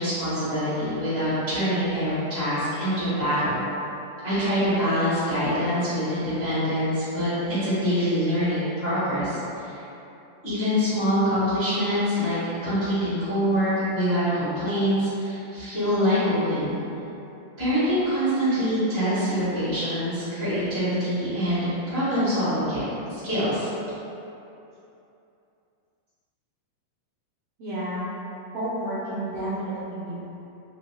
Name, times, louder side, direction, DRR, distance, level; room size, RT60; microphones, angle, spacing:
voice 1, 0.0-3.6 4.2-9.8 10.4-16.7 17.6-23.7, equal, 60° left, -17 dB, 0.6 m, -25 dB
voice 2, 27.6-28.1 28.5-30.3, right 1 dB, 80° right, -12 dB, 1.4 m, -31 dB
5.5 x 2.1 x 2.7 m, 2.8 s
omnidirectional pair, 3.8 m